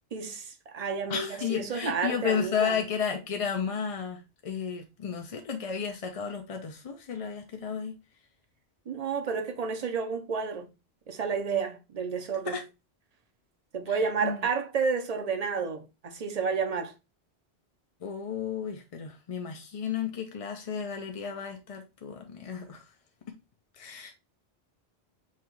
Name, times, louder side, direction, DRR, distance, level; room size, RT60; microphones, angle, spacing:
voice 1, 0.1-2.8 8.9-10.7 11.1-12.6 13.7-16.9, right 5 dB, 45° right, 0.7 m, -31 dB
voice 2, 1.1-7.9 12.5-12.6 13.9-14.5 18.0-22.8 23.8-24.1, left 7 dB, 45° left, 0.5 m, -33 dB
5.6 x 2.3 x 3.0 m
omnidirectional pair, 1.1 m